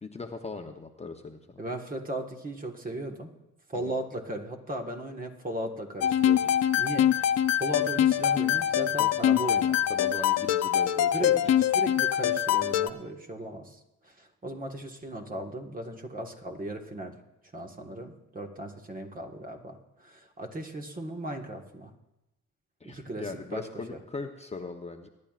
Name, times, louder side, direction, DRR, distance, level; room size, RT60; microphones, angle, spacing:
voice 1, 0.0-1.6 3.9-4.0 9.0-9.1 9.9-11.3 22.8-25.1, left 3 dB, 20° left, 4 dB, 0.9 m, -39 dB
voice 2, 1.6-3.3 3.7-7.3 7.6-9.8 11.1-17.2 17.5-21.9 22.8-24.0, right 1 dB, 30° right, 3 dB, 1.6 m, -37 dB
sound 1, 6.0-12.9, left 10 dB, 60° left, 0.6 m, -24 dB
23.5 x 10.5 x 2.5 m, 0.94 s
cardioid pair, 90°, 30 cm